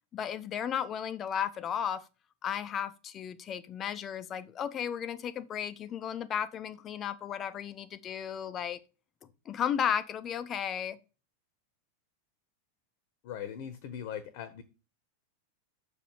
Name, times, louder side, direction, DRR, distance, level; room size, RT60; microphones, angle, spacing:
voice 1, 0.1-2.0 2.4-8.8 9.5-11.0, left 9 dB, 30° left, 0.8 m, -34 dB
voice 2, 13.2-14.6, left 9 dB, 45° left, 1.1 m, -40 dB
6.8 x 5.0 x 7.1 m
figure-of-eight pair, 90°, 0 cm